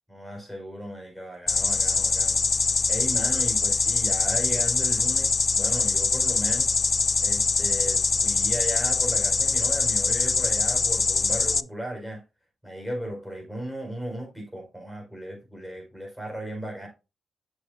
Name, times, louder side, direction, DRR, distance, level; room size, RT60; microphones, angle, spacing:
voice 1, 0.1-6.7 7.2-12.2 12.6-16.9, right 1 dB, ahead, 4.6 m, -36 dB
sound 1, 1.5-11.6, left 4 dB, 40° left, 0.3 m, -23 dB
7.8 x 6.7 x 2.6 m
supercardioid pair, 50°, 0 cm